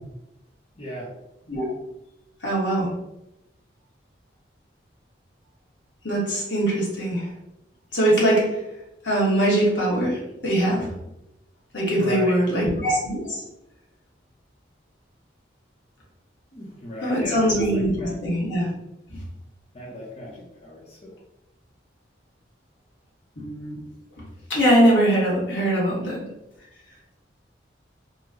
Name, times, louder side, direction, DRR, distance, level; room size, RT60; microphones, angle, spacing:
voice 1, 0.7-1.1 11.9-12.7 16.5-18.2 19.7-21.1, equal, 35° left, -5 dB, 0.7 m, -36 dB
voice 2, 2.4-2.9 6.0-7.3 7.9-8.6 9.0-10.9 11.7-13.4 17.0-18.7 19.1-19.2 23.4-23.8 24.2-24.3 24.5-26.2, right 1 dB, 80° left, -5 dB, 1.3 m, -22 dB
3.0 x 2.1 x 3.6 m, 0.89 s
head